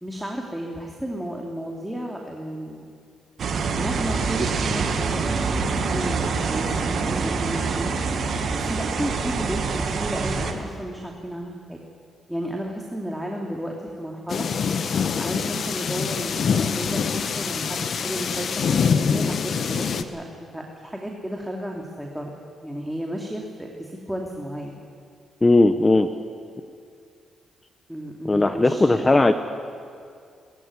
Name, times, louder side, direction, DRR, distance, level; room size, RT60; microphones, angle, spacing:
voice 1, 0.0-2.8 3.8-7.9 8.5-9.6 10.0-11.8 12.3-14.5 15.2-22.3 22.6-24.8 27.9-29.2, equal, 5° right, 0 dB, 2.8 m, -33 dB
sound 1, 3.4-10.5, right 4 dB, 65° right, 2.1 m, -25 dB
sound 2, 14.3-20.0, left 6 dB, 65° left, 1.2 m, -25 dB
voice 2, 25.4-26.1 28.3-29.3, left 2 dB, 25° left, 9 dB, 1.0 m, -17 dB
21.0 x 15.0 x 9.8 m, 2.3 s
cardioid pair, 65°, 0 cm